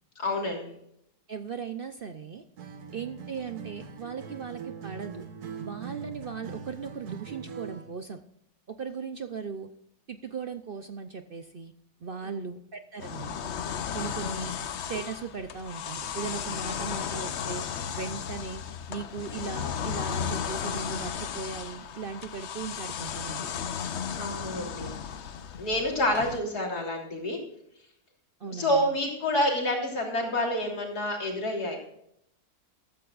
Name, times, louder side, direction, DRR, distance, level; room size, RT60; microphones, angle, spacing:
voice 1, 0.2-0.8 12.2-12.4 24.2-24.9 25.6-27.4 28.5-31.8, left 1 dB, 85° left, 0 dB, 3.8 m, -28 dB
voice 2, 1.3-2.4 2.9-5.2 5.6-8.2 8.7-9.7 10.1-11.7 12.0-13.4 13.9-14.5 14.9-17.6 17.9-18.6 18.9-23.5 28.4-28.9, right 5 dB, 50° right, 8 dB, 0.7 m, -38 dB
Acoustic guitar, 2.6-8.0, right 6 dB, 80° right, 1.7 m, -42 dB
sound 1, 13.0-26.4, left 7 dB, 55° left, 0.9 m, -35 dB
15.0 x 13.0 x 2.5 m, 0.72 s
omnidirectional pair, 1.6 m